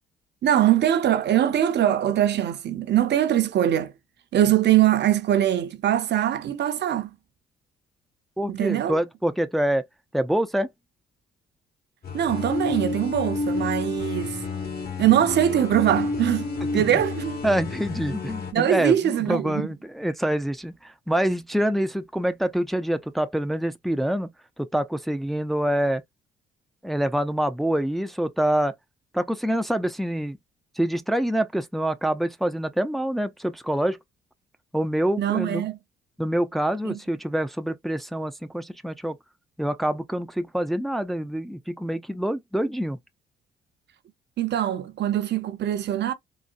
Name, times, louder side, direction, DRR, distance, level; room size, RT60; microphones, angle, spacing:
voice 1, 0.4-3.9 4.3-7.1 8.5-9.0 12.1-14.4 15.0-17.4 18.5-19.7 35.2-35.8 36.8-37.0 44.4-46.1, right 11 dB, 60° right, 0.7 m, -22 dB
voice 2, 8.4-9.8 10.1-10.7 16.7-17.0 17.4-24.3 24.6-26.0 26.8-28.7 29.1-30.4 30.8-34.0 34.7-35.7 36.2-39.2 39.6-43.0, right 1 dB, ahead, 0.4 m, -26 dB
sound 1, 12.0-18.5, left 3 dB, 50° left, 1.3 m, -30 dB
4.0 x 2.1 x 2.5 m
cardioid pair, 90°, 20 cm